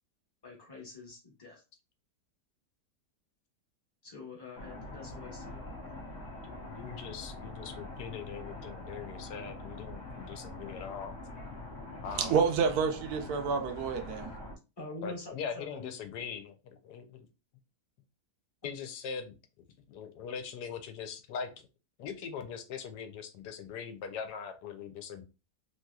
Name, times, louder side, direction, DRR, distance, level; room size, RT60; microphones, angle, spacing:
voice 1, 0.4-1.6 4.0-5.6 14.8-15.9, left 3 dB, 20° left, 0.8 m, -45 dB
sound 1, 4.5-14.6, left 2 dB, 65° left, 0.8 m, -44 dB
voice 2, 6.4-11.1 12.0-12.4 15.0-17.3 18.6-19.3 19.9-21.7 22.0-25.2, left 6 dB, 80° left, 1.2 m, -41 dB
voice 3, 12.0-14.3, right 6 dB, 70° right, 1.0 m, -29 dB
3.1 x 2.8 x 2.3 m
omnidirectional pair, 1.8 m